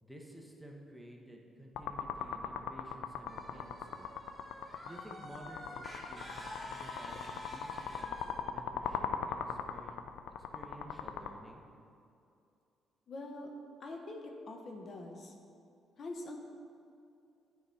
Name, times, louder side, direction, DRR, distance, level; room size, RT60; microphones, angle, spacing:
voice 1, 0.0-4.1 4.8-10.1 10.5-11.6, equal, 5° right, 0 dB, 1.1 m, -52 dB
sound 1, 1.7-11.3, left 8 dB, 90° left, 0.4 m, -39 dB
sound 2, 3.3-8.4, left 1 dB, 15° left, 1.9 m, -48 dB
voice 2, 13.1-13.5 13.8-15.3 16.0-16.4, left 2 dB, 55° left, 2 dB, 1.0 m, -44 dB
9.4 x 4.8 x 5.8 m, 2.5 s
cardioid pair, 90°, 0 cm